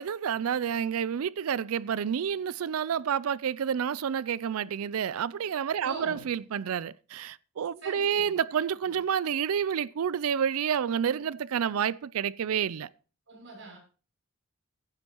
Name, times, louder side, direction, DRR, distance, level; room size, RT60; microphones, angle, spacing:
voice 1, 0.0-12.9, right 8 dB, 85° right, 0.4 m, -29 dB
voice 2, 5.8-6.4 7.8-9.0 13.3-13.8, right 3 dB, 60° right, 6.5 m, -44 dB
15.5 x 9.8 x 3.0 m
head